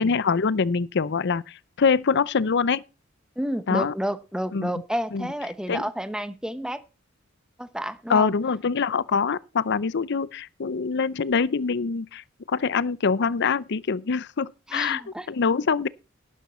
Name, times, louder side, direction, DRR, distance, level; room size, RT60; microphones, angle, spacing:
voice 1, 0.0-2.8 3.7-3.9 4.5-4.7 5.1-5.3 5.7-5.8 8.1-15.0 15.3-15.9, left 5 dB, 55° left, 0.6 m, -24 dB
voice 2, 3.4-6.8 7.6-8.3 14.7-15.3, equal, 5° right, 0.9 m, -30 dB
11.5 x 11.0 x 4.3 m
head